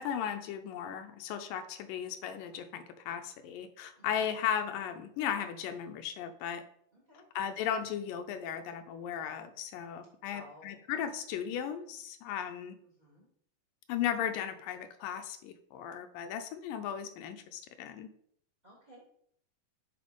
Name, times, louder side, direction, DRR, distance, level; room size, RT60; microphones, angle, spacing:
voice 1, 0.0-6.6 7.4-12.8 13.9-18.1, left 9 dB, 85° left, 8 dB, 2.3 m, -36 dB
voice 2, 6.9-7.2 10.3-10.8 12.9-13.3 18.6-19.0, equal, 15° right, -3 dB, 2.2 m, -55 dB
7.6 x 5.7 x 5.2 m, 0.68 s
omnidirectional pair, 4.0 m